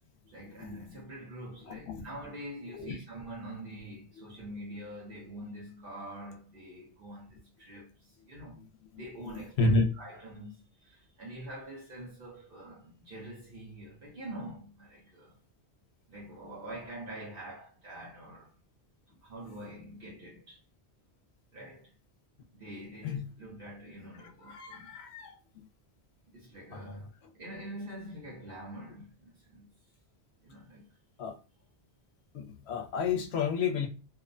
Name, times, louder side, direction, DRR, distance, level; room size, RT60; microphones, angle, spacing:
voice 1, 0.3-8.6 8.9-15.4 16.1-18.5 19.2-20.6 21.5-21.9 22.5-24.9 26.3-27.1 27.3-29.7 30.4-30.9, right 1 dB, 60° right, 1.0 m, -45 dB
voice 2, 1.7-2.0 2.7-3.0 8.6-8.7 8.9-9.9 23.0-23.3 24.1-25.7 26.7-27.0 31.2-31.4 32.3-33.9, left 3 dB, 75° left, 0.9 m, -32 dB
2.7 x 2.1 x 2.4 m
omnidirectional pair, 1.1 m